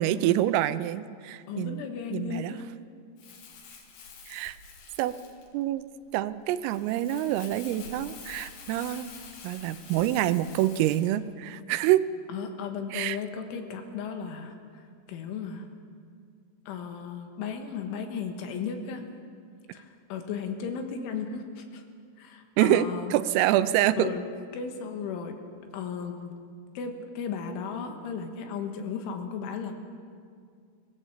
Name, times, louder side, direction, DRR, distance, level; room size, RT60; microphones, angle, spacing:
voice 1, 0.0-1.8 2.1-2.6 4.3-4.6 5.0-5.1 5.5-5.9 6.1-9.1 9.4-12.0 12.9-13.2 22.6-24.1, right 13 dB, 90° right, 13 dB, 3.4 m, -26 dB
voice 2, 1.5-2.7 12.3-14.8 15.1-15.7 16.7-19.0 19.7-21.8 22.2-23.1 24.0-24.2 24.5-25.4 25.7-26.3 26.8-29.7, left 6 dB, 75° left, 5 dB, 3.9 m, -35 dB
Crumpling crinkling, 3.2-11.1, left 5 dB, 55° left, 3.1 m, -47 dB
24.0 x 17.5 x 7.3 m, 2.2 s
omnidirectional pair, 5.8 m